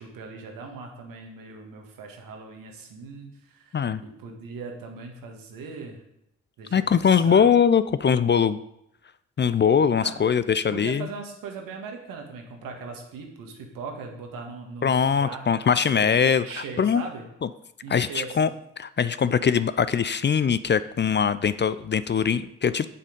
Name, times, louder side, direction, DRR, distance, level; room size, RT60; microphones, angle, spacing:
voice 1, 0.0-6.0 6.6-7.5 10.0-10.2 10.7-17.3 17.8-18.6, right 4 dB, 75° right, 2 dB, 1.8 m, -40 dB
voice 2, 6.7-8.6 9.4-11.1 14.8-17.0 17.4-17.5 17.9-18.5 18.8-22.9, left 7 dB, 30° left, 14 dB, 0.5 m, -22 dB
7.4 x 6.7 x 5.2 m, 0.79 s
hypercardioid pair, 45°, 34 cm